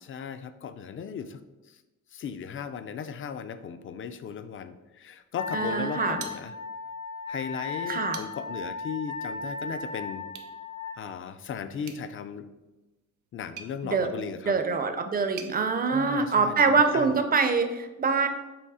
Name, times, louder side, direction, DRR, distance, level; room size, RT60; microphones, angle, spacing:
voice 1, 0.0-1.4 2.1-6.5 7.3-10.3 11.0-12.5 13.3-14.5 15.9-16.6 16.9-17.2, left 7 dB, 40° left, 11 dB, 0.4 m, -36 dB
Wind instrument woodwind instrument, 5.4-11.0, left 4 dB, 75° left, 0.9 m, -36 dB
voice 2, 5.5-6.2 7.9-8.2 13.8-14.1 14.4-18.3, right 4 dB, 30° right, 8 dB, 0.5 m, -24 dB
sound 1, 6.2-6.9 7.3-7.4 7.9-8.6 10.3-10.5 11.8-15.6, right 7 dB, 70° right, 0.7 m, -46 dB
7.1 x 3.0 x 4.8 m, 1.1 s
wide cardioid pair, 175°, 31 cm